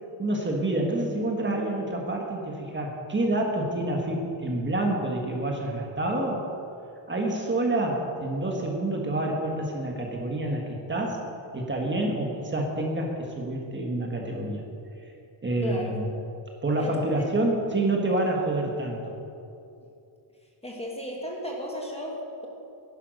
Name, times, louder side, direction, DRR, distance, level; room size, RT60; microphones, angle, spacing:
voice 1, 0.2-6.4 7.1-11.2 11.5-14.6 15.4-16.1 16.6-19.1, right 2 dB, 20° right, 0 dB, 1.7 m, -28 dB
voice 2, 15.6-16.0 16.7-17.2 20.6-22.5, left 1 dB, 10° left, -1 dB, 1.6 m, -35 dB
15.5 x 11.0 x 6.5 m, 2.7 s
wide cardioid pair, 180°, 50 cm